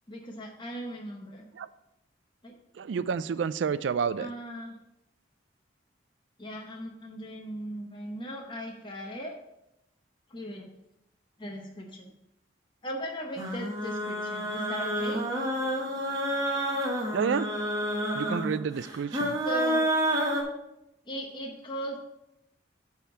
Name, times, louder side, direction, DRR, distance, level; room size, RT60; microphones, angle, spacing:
voice 1, 0.1-1.5 2.4-2.5 4.2-4.7 6.4-9.3 10.3-10.7 11.4-12.1 12.8-15.2 19.4-19.9 21.1-22.0, right 1 dB, 25° left, 0 dB, 0.8 m, -38 dB
voice 2, 2.8-4.3 17.1-17.5 18.1-19.4, right 6 dB, 75° right, 15 dB, 0.4 m, -29 dB
sound 1, 13.4-20.4, equal, 20° right, 1.2 m, -29 dB
8.9 x 3.5 x 6.3 m, 0.87 s
head